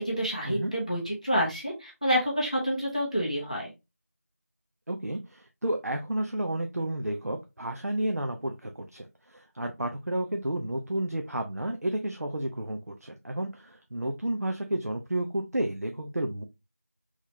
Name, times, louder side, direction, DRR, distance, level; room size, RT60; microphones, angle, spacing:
voice 1, 0.0-3.7, equal, 25° left, -2 dB, 0.9 m, -28 dB
voice 2, 4.9-16.4, right 1 dB, 75° right, 4 dB, 0.6 m, -31 dB
3.9 x 3.0 x 2.7 m, 0.24 s
figure-of-eight pair, 180°, 8 cm